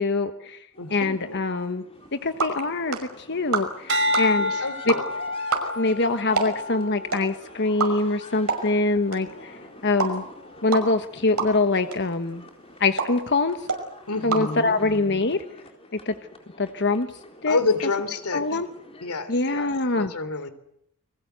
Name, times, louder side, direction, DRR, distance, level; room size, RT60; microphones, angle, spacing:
voice 1, 0.0-1.8 2.2-4.5 4.9-5.0 5.8-10.2 10.6-12.4 12.8-13.7 14.2-15.4 15.9-16.1 16.6-17.1 17.4-17.6 18.3-18.7 19.3-20.1, left 3 dB, 50° left, 9 dB, 1.2 m, -24 dB
sound 1, 0.7-19.2, left 2 dB, 25° left, 4.1 m, -47 dB
voice 2, 0.8-1.4 4.4-5.0 14.1-14.8 17.5-18.4 19.0-20.5, left 3 dB, 85° left, 12 dB, 3.2 m, -28 dB
sound 2, 1.9-15.2, right 4 dB, 85° right, 5.7 m, -33 dB
sound 3, 3.9-8.3 8.9-9.3, left 1 dB, 55° right, 2.4 m, -29 dB
29.5 x 22.0 x 8.0 m, 0.71 s
head